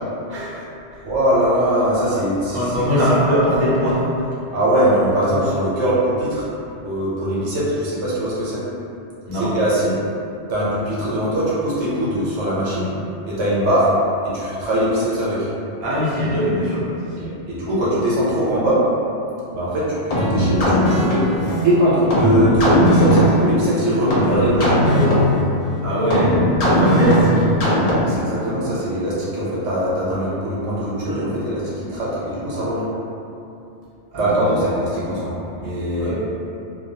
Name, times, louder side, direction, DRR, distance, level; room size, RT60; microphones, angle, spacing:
voice 1, 0.3-0.7 2.5-4.3 9.3-9.5 15.8-17.3 25.8-26.4 26.8-27.4 34.1-34.6 36.0-36.1, equal, 50° right, -9 dB, 0.7 m, -21 dB
voice 2, 1.0-2.6 4.5-6.5 6.8-8.6 9.5-9.9 10.5-12.9 13.3-13.9 14.3-15.4 17.2-18.8 19.5-21.2 21.6-24.7 28.0-32.8 34.2-36.1, equal, 75° right, -8 dB, 1.0 m, -21 dB
sound 1, 20.1-28.3, equal, 80° left, 0.3 m, -18 dB
2.3 x 2.2 x 2.7 m, 2.7 s
omnidirectional pair, 1.2 m